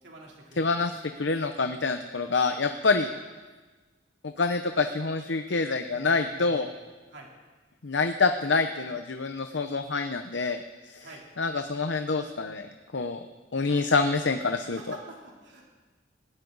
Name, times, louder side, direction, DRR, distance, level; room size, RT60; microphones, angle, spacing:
voice 1, 0.0-0.7 6.0-6.8 7.1-7.3 11.0-11.2 13.7-13.9 14.8-15.7, right 2 dB, 65° right, -2 dB, 3.3 m, -47 dB
voice 2, 0.6-3.1 4.2-6.7 7.8-11.1 11.4-12.7 12.9-13.3 13.5-14.8, left 4 dB, 70° left, 7 dB, 0.8 m, -27 dB
18.5 x 17.5 x 4.0 m, 1.3 s
head